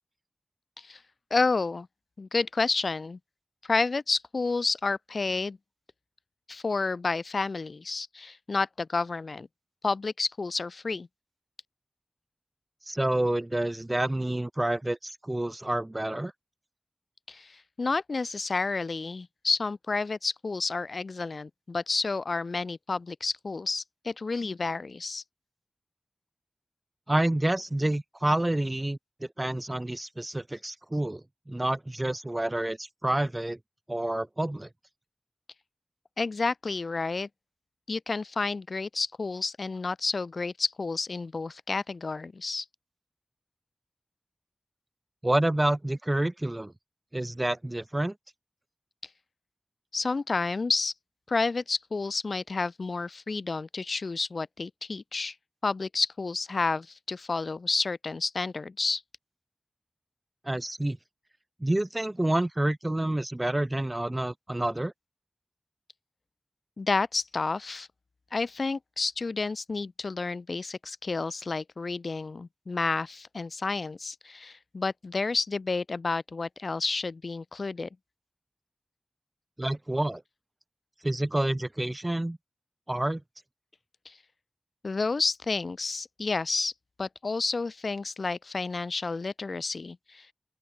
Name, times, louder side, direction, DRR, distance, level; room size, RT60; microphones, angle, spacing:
voice 1, 1.3-1.9 2.2-3.2 3.6-5.6 6.5-9.5 9.8-11.1 17.3-25.2 36.2-37.3 37.9-42.6 49.9-50.9 51.3-55.3 55.6-59.0 66.8-67.9 68.3-77.9 84.1-84.2 84.8-86.7 87.0-90.3, left 3 dB, 80° left, 2.5 m, -30 dB
voice 2, 12.9-16.3 27.1-33.6 33.9-34.7 45.2-46.7 47.1-48.1 60.4-61.0 61.6-64.9 79.6-80.2 81.0-82.4 82.9-83.2, right 1 dB, 25° right, 1.9 m, -28 dB
open air
wide cardioid pair, 65°, 0 cm